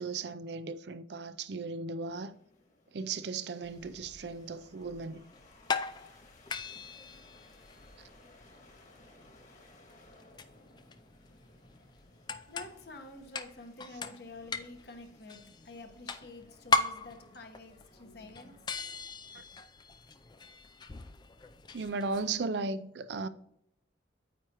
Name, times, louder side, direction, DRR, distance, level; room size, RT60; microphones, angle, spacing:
voice 1, 0.0-2.4 2.9-5.3 19.3-19.4 21.7-23.3, right 4 dB, 65° right, 0.5 m, -36 dB
sound 1, 2.0-19.0, left 2 dB, 40° left, 1.8 m, -61 dB
sound 2, 3.6-22.4, left 3 dB, 25° left, 0.4 m, -39 dB
voice 2, 12.5-18.6, left 2 dB, 60° left, 1.3 m, -49 dB
9.3 x 8.9 x 2.9 m
head